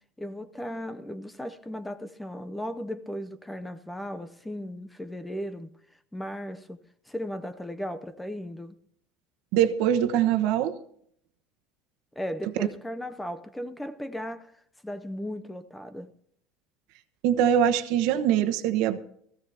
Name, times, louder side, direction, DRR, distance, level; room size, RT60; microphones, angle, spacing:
voice 1, 0.2-5.7 6.1-6.8 7.1-8.8 12.2-16.1, equal, 5° left, 0.5 m, -36 dB
voice 2, 9.5-10.8 12.6-12.7 17.2-19.0, right 10 dB, 65° right, 1.1 m, -23 dB
17.5 x 15.0 x 2.8 m
cardioid pair, 155°, 0 cm